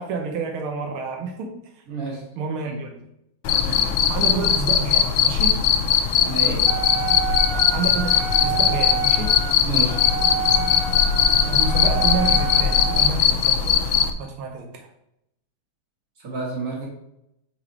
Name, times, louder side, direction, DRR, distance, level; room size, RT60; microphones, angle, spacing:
voice 1, 0.0-1.5 2.4-3.0 4.1-5.7 7.5-8.2 8.4-9.4 11.4-13.9 14.2-14.9, right 4 dB, 90° right, 3 dB, 1.7 m, -29 dB
voice 2, 1.9-2.3 2.7-2.8 3.6-3.9 6.2-6.7 9.6-10.0 16.2-16.9, right 3 dB, 45° right, -2 dB, 2.1 m, -30 dB
Cricket, 3.4-14.1, left 8 dB, 80° left, 1.4 m, -20 dB
Wind instrument woodwind instrument, 6.7-13.1, right 8 dB, 70° right, 1.2 m, -29 dB
6.0 x 4.1 x 4.8 m, 0.80 s
omnidirectional pair, 2.2 m